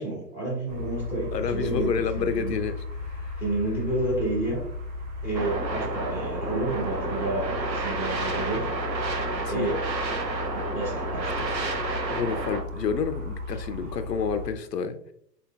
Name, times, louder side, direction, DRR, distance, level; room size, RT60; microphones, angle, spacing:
voice 1, 0.0-2.6 3.4-4.7 5.2-8.7 9.5-9.8 10.5-11.4 13.5-13.6, right 2 dB, 5° right, 0.8 m, -30 dB
sound 1, 0.7-14.5, left 2 dB, 50° right, 1.0 m, -35 dB
voice 2, 1.3-2.8 3.0-3.4 9.3-9.7 11.4-11.6 12.1-15.1, left 6 dB, 75° left, 0.5 m, -30 dB
sound 2, 5.3-12.6, right 3 dB, 85° right, 0.9 m, -30 dB
3.8 x 3.8 x 2.3 m
figure-of-eight pair, 120°, 50 cm